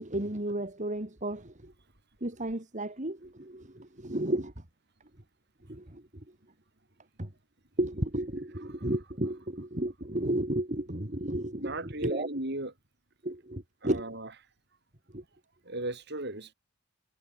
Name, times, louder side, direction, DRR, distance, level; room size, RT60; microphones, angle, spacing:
voice 1, 0.0-1.7 2.2-4.5 5.7-6.2 7.2-7.3 7.8-11.7 12.0-12.3 13.2-14.0 15.1-15.2, right 1 dB, 40° right, 2.9 m, -33 dB
voice 2, 11.6-12.7 13.8-14.3 15.6-16.5, right 2 dB, 60° right, 6.9 m, -36 dB
head